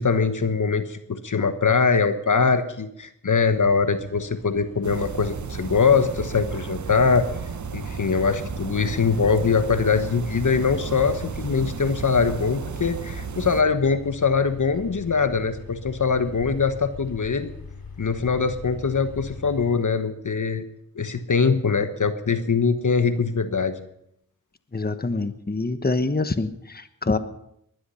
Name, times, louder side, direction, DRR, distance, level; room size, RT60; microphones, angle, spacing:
voice 1, 0.0-7.3 7.7-17.5 18.0-20.6 20.9-23.8, left 5 dB, 60° left, 10 dB, 1.2 m, -22 dB
sound 1, 3.4-19.8, left 5 dB, 80° left, 2.8 m, -42 dB
sound 2, 4.8-13.6, right 6 dB, 55° right, 0.8 m, -34 dB
voice 2, 24.7-27.2, left 3 dB, 25° left, 10 dB, 1.2 m, -25 dB
20.5 x 11.5 x 5.7 m, 0.76 s
cardioid pair, 45°, 35 cm